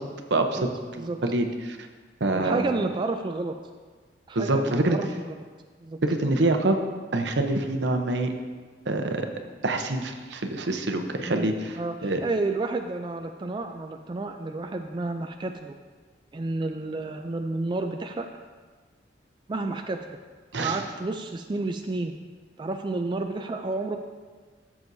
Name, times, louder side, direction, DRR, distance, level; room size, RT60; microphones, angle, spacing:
voice 1, 1.0-1.8 2.2-2.6 4.3-5.0 6.0-6.8 7.1-8.3 8.9-9.3 9.6-12.2 20.5-20.8, right 2 dB, 70° right, 5 dB, 0.8 m, -25 dB
voice 2, 2.3-3.6 4.3-5.1 5.8-6.0 11.3-11.5 11.7-15.8 16.3-18.3 19.5-20.2 20.6-22.1 22.6-24.0, right 3 dB, 25° right, 5 dB, 0.3 m, -30 dB
14.0 x 7.1 x 2.7 m, 1.5 s
head